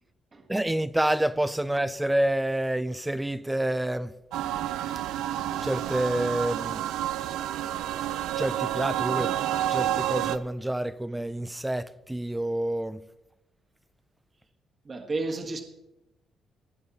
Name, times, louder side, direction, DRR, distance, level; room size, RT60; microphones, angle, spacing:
voice 1, 0.5-4.1 5.6-6.9 8.4-9.3 9.7-13.0, right 1 dB, 10° right, 0.5 m, -28 dB
sound 1, 4.3-10.4, right 12 dB, 90° right, 0.4 m, -29 dB
voice 2, 14.8-15.6, right 3 dB, 35° right, 1.5 m, -31 dB
19.0 x 7.0 x 4.1 m
cardioid pair, 90°, 0 cm